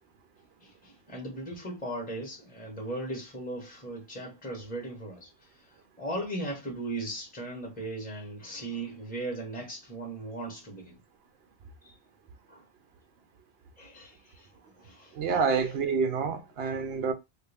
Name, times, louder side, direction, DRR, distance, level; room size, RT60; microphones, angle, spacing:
voice 1, 0.6-5.3 6.0-11.0 11.8-12.0 12.5-12.6 13.8-15.4, right 1 dB, 10° left, 1.3 m, -38 dB
voice 2, 15.1-17.1, right 5 dB, 70° right, 0.9 m, -28 dB
3.3 x 2.6 x 3.4 m
omnidirectional pair, 1.1 m